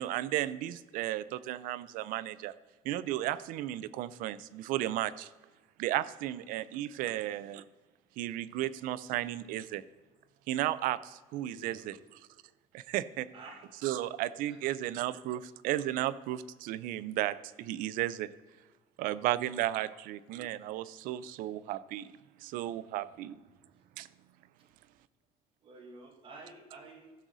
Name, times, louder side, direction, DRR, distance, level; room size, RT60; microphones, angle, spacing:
voice 1, 0.0-2.5 2.8-5.3 5.8-7.6 8.2-9.8 10.5-12.0 12.7-13.3 13.8-18.3 19.0-22.1 22.4-23.4 24.0-24.1, right 14 dB, 65° right, 16 dB, 0.4 m, -34 dB
voice 2, 11.4-12.0 13.3-13.7 14.5-14.9 19.0-19.2 24.6-24.7 25.6-27.1, right 3 dB, 35° right, 2 dB, 1.8 m, -51 dB
15.0 x 6.2 x 4.0 m, 1.3 s
cardioid pair, 165°, 15 cm